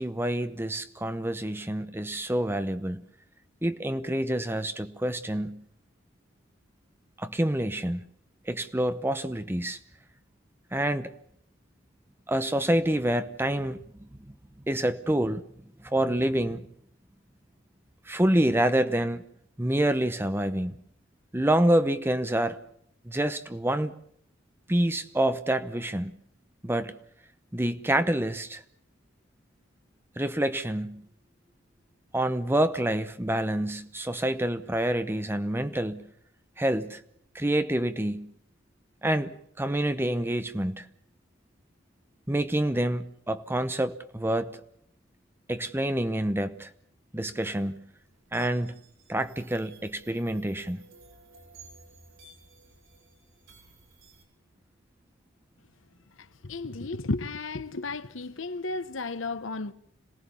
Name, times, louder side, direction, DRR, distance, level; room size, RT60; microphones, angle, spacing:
voice 1, 0.0-3.0 3.6-5.6 7.2-8.0 8.5-9.8 10.7-11.1 12.3-13.8 14.7-15.4 15.8-16.7 18.1-19.2 19.6-20.8 21.3-22.6 23.0-23.9 24.7-26.1 26.6-26.9 27.5-28.6 30.2-31.0 32.1-36.1 36.6-37.0 37.3-38.3 39.0-39.3 39.6-40.9 42.3-44.6 45.5-46.7 47.1-47.8 48.3-48.8 49.1-50.8, right 1 dB, 10° right, 0.8 m, -27 dB
sound 1, 47.4-54.2, right 3 dB, 90° right, 7.2 m, -55 dB
voice 2, 56.4-59.7, left 3 dB, 75° left, 1.0 m, -33 dB
27.0 x 18.0 x 7.0 m
head